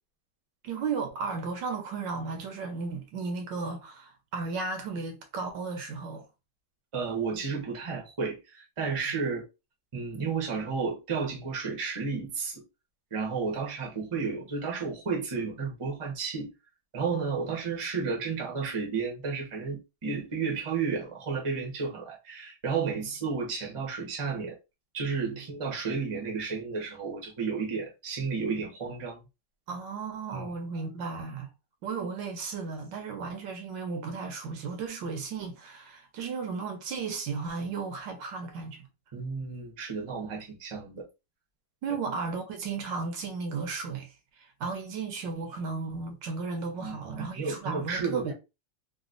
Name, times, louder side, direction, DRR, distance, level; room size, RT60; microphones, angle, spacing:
voice 1, 0.6-6.2 25.3-25.4 29.7-31.5 31.8-38.9 41.8-44.1 44.4-48.3, right 4 dB, 75° right, 1.4 m, -35 dB
voice 2, 6.9-9.4 9.9-12.6 13.1-16.5 16.9-24.6 24.9-29.2 30.3-30.5 39.1-41.0 46.8-48.3, right 5 dB, 25° right, 0.6 m, -32 dB
3.9 x 2.3 x 2.4 m
omnidirectional pair, 2.0 m